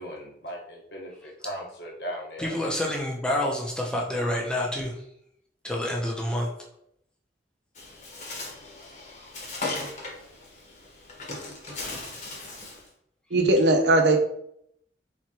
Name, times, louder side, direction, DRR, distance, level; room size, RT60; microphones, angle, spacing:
voice 1, 0.0-2.5, equal, 70° left, -3 dB, 1.4 m, -38 dB
voice 2, 2.4-5.0 5.6-6.5, left 1 dB, 5° left, -2 dB, 0.8 m, -28 dB
Bird, 7.8-12.9, left 2 dB, 45° left, 1.2 m, -37 dB
voice 3, 13.3-14.2, right 2 dB, 75° right, 4 dB, 0.7 m, -19 dB
4.4 x 3.6 x 3.0 m, 0.71 s
head